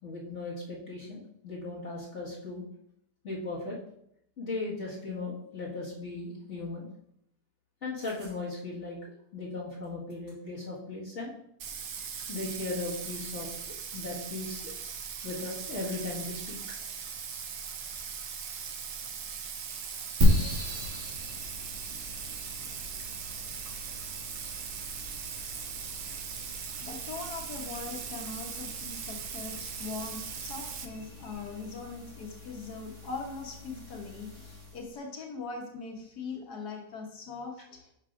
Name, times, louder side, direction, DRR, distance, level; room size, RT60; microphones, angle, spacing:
voice 1, 0.0-2.6 3.2-3.8 4.4-6.9 7.8-9.0 9.3-11.3 12.3-14.7 15.2-16.6 20.7-20.8, left 3 dB, 45° left, -7 dB, 2.1 m, -37 dB
sound 1, 8.0-8.4 9.5-9.6 9.8-10.6 11.8-12.4 13.0-13.1 13.9-14.1 15.7-16.1 17.9-18.5 18.9-19.4, right 2 dB, 90° right, 2.6 m, -57 dB
Bathtub (filling or washing), 11.6-30.9, right 7 dB, 60° right, 0.9 m, -39 dB
sound 2, 20.2-34.9, equal, 45° right, 2.1 m, -34 dB
voice 2, 26.8-37.9, left 4 dB, 80° left, 1 dB, 1.6 m, -41 dB
9.3 x 5.9 x 2.5 m, 0.75 s
omnidirectional pair, 1.7 m